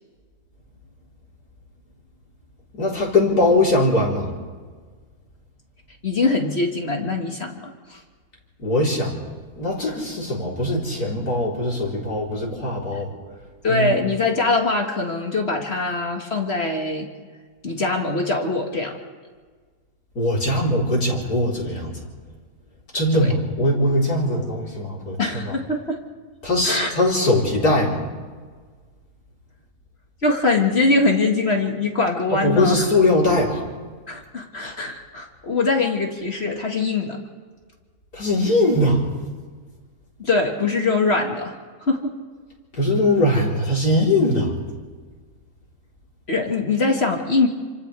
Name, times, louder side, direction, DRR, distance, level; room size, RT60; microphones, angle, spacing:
voice 1, 2.8-4.3 8.6-9.1 9.6-13.1 13.7-13.9 20.2-21.9 22.9-25.5 26.4-28.1 32.3-33.6 38.1-39.0 42.7-44.5, left 1 dB, 70° left, -4 dB, 4.5 m, -21 dB
voice 2, 6.0-8.0 13.6-17.1 17.6-19.0 23.1-23.3 25.2-26.0 26.6-26.9 30.2-32.9 34.1-37.2 40.2-41.6 41.9-42.1 46.3-47.5, left 3 dB, 40° left, 2 dB, 2.0 m, -22 dB
29.0 x 26.0 x 3.4 m, 1.5 s
omnidirectional pair, 1.7 m